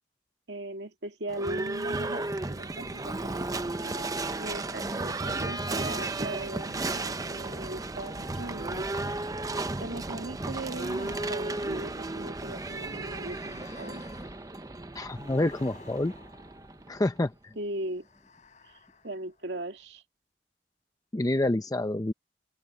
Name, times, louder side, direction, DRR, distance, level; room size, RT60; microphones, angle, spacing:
voice 1, 0.5-4.1 4.4-8.9 9.8-14.0 17.6-18.1 18.6-18.8 19.0-20.0, right 1 dB, 80° right, 2.0 m, -39 dB
Livestock farm animals working animals / Bell, 1.3-17.2, right 2 dB, 20° right, 0.7 m, -34 dB
sound 1, 10.5-17.2 17.9-19.7, left 4 dB, 45° left, 3.6 m, -54 dB
voice 2, 14.9-16.1 16.9-17.5 21.1-22.1, left 1 dB, 20° left, 0.6 m, -28 dB
open air
head